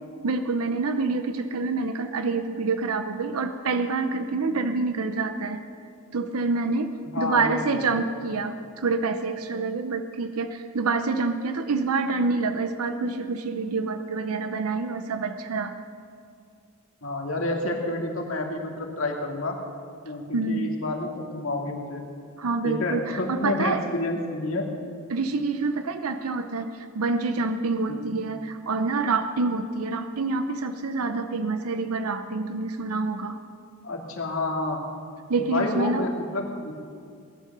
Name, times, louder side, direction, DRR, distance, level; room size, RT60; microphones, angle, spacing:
voice 1, 0.2-5.6 6.1-15.8 20.3-20.7 22.4-23.8 25.1-33.4 35.3-36.0, right 3 dB, 85° right, 9 dB, 0.7 m, -27 dB
voice 2, 7.0-7.9 17.0-19.6 20.0-22.0 22.6-24.7 27.9-28.1 33.8-34.8 35.4-36.7, left 2 dB, 65° left, 1 dB, 2.4 m, -29 dB
18.5 x 11.5 x 6.7 m, 2.3 s
head